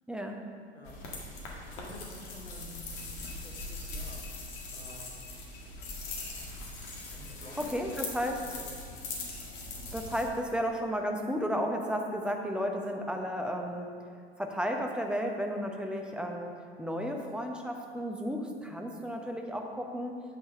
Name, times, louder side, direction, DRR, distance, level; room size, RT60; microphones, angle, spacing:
voice 1, 0.1-0.4 7.6-8.4 9.9-13.9 14.4-16.5 16.8-20.2, equal, 5° right, 3 dB, 0.8 m, -33 dB
sound 1, 0.9-10.2, left 2 dB, 50° left, 1.9 m, -41 dB
voice 2, 1.6-4.2 4.5-5.1 7.1-7.9 8.3-8.7 15.9-16.0 18.9-19.0, left 1 dB, 80° left, -1 dB, 1.6 m, -50 dB
8.6 x 6.3 x 5.1 m, 2.1 s
figure-of-eight pair, 80°, 32 cm